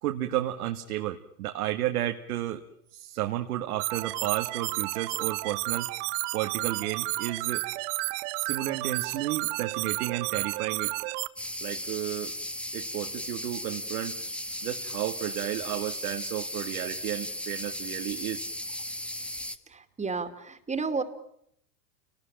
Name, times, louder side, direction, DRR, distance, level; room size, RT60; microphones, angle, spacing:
voice 1, 0.0-2.6 2.9-5.9 6.3-7.6 8.0-10.9 11.6-12.3 12.7-14.2 14.6-18.5, right 13 dB, 75° right, 5 dB, 1.8 m, -32 dB
sound 1, 3.8-11.3, right 22 dB, 55° right, 1.1 m, -32 dB
sound 2, 11.4-19.6, left 1 dB, 5° left, 1.3 m, -36 dB
voice 2, 19.7-21.0, right 4 dB, 15° right, 9 dB, 2.6 m, -32 dB
29.0 x 19.5 x 8.9 m, 0.73 s
hypercardioid pair, 110°, 45 cm